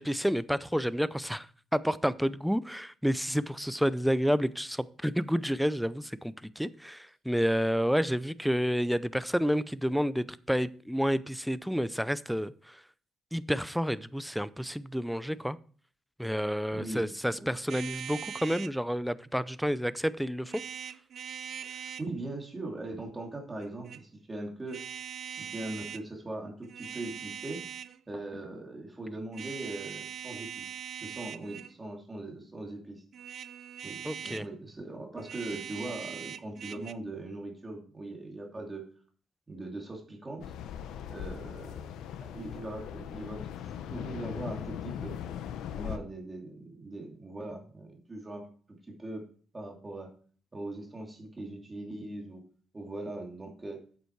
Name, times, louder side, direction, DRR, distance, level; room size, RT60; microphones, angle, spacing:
voice 1, 0.0-12.8 13.3-15.6 16.2-20.6 34.0-34.4, equal, ahead, 16 dB, 0.5 m, -30 dB
voice 2, 16.7-17.5 21.7-24.8 25.3-27.7 28.1-30.7 31.0-33.0 33.8-38.8 39.5-40.5 41.1-41.8 42.3-43.6 43.9-45.2 45.7-48.4 48.8-49.2 49.5-50.1 50.5-52.4 52.7-53.8, right 2 dB, 20° right, 0 dB, 2.8 m, -40 dB
sound 1, 17.7-18.8 20.5-22.1 23.6-24.0 24.7-26.0 26.6-28.0 29.3-31.8 33.1-34.5 35.2-36.9, right 8 dB, 60° right, 0.5 m, -41 dB
sound 2, 40.4-46.0, left 9 dB, 85° left, 0.8 m, -39 dB
8.2 x 8.0 x 4.6 m, 0.43 s
cardioid pair, 90°, 0 cm